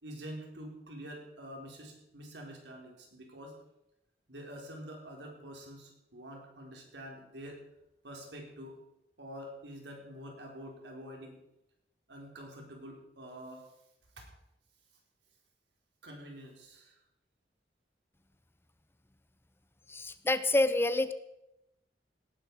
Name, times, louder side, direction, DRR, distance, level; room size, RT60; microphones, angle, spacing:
voice 1, 0.0-3.5 4.3-7.6 8.0-8.8 9.2-11.4 12.1-13.7 14.2-14.3 16.0-17.0, equal, 85° right, 1 dB, 4.1 m, -46 dB
voice 2, 19.9-21.1, left 2 dB, 15° left, 13 dB, 0.6 m, -27 dB
18.0 x 11.0 x 4.7 m, 0.86 s
head